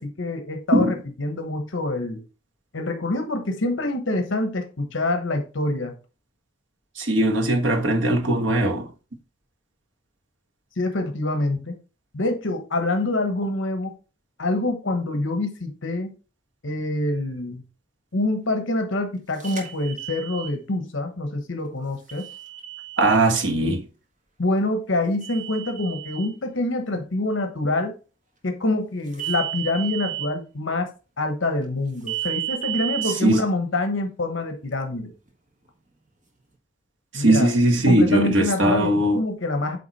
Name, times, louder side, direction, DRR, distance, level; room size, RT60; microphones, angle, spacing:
voice 1, 0.0-2.2 2.7-5.9 10.8-11.7 12.1-13.9 14.4-16.1 16.6-17.6 18.1-22.3 24.4-27.9 28.4-30.9 31.2-35.1 37.1-37.5 37.8-39.8, left 2 dB, 75° left, 1.1 m, -26 dB
voice 2, 7.0-8.9 23.0-23.8 33.2-33.4 37.1-39.2, right 1 dB, 70° right, 1.4 m, -19 dB
sound 1, 19.4-20.5 22.1-23.2 25.2-26.3 29.1-30.3 32.1-33.1, right 13 dB, 40° right, 1.6 m, -32 dB
8.5 x 3.5 x 4.2 m
head